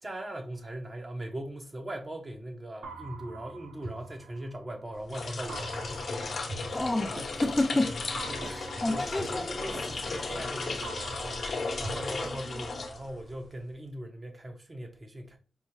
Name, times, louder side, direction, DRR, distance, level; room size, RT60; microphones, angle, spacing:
voice 1, 0.0-6.0 8.4-15.4, right 1 dB, 40° right, 1.0 m, -40 dB
sound 1, 2.8-4.9 5.5-7.6 8.2-10.4 10.8-12.9, right 3 dB, 85° right, 0.8 m, -45 dB
sound 2, 5.0-13.4, left 3 dB, 70° left, 0.9 m, -35 dB
voice 2, 6.7-9.4, left 2 dB, 25° left, 0.5 m, -30 dB
sound 3, 6.9-11.5, right 2 dB, 60° right, 1.9 m, -46 dB
5.3 x 2.1 x 3.1 m
cardioid pair, 55°, 0 cm